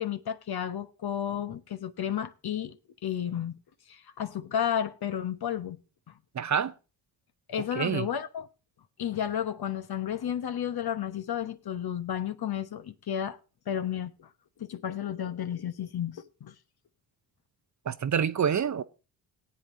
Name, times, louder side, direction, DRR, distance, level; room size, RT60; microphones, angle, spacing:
voice 1, 0.0-2.8 3.0-3.6 3.9-5.8 7.5-8.5 9.0-13.4 13.7-14.3 14.6-16.5, left 9 dB, 50° left, 1.1 m, -32 dB
voice 2, 6.3-6.7 7.7-8.1 17.9-18.8, right 7 dB, 35° right, 0.7 m, -27 dB
18.5 x 8.5 x 2.6 m
supercardioid pair, 55°, 48 cm